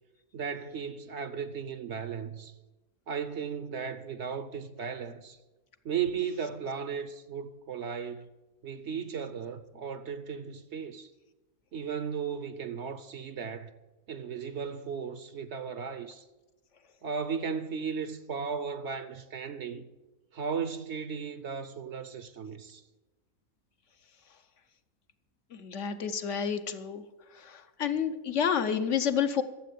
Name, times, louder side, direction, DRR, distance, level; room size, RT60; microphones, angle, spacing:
voice 1, 0.3-2.5 3.1-5.4 5.8-8.3 8.6-11.1 11.7-13.7 14.1-16.3 17.0-19.9 20.3-22.8, right 6 dB, 60° right, 0.9 m, -36 dB
voice 2, 25.5-27.0 27.4-29.4, left 7 dB, 60° left, 1.1 m, -29 dB
12.5 x 7.6 x 8.4 m
omnidirectional pair, 1.5 m